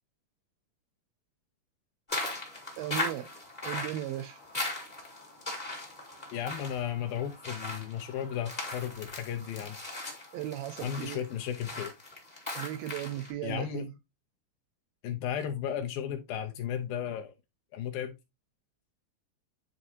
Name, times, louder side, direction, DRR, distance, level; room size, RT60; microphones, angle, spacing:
sound 1, 2.1-13.3, left 2 dB, 45° left, 0.5 m, -39 dB
voice 1, 2.8-3.3 3.6-4.4 10.3-11.3 12.6-13.9, right 12 dB, 85° right, 2.1 m, -36 dB
voice 2, 6.3-9.8 10.8-11.9 13.4-13.9 15.0-17.3 17.7-18.1, left 9 dB, 75° left, 2.2 m, -34 dB
9.6 x 3.6 x 2.8 m
omnidirectional pair, 4.6 m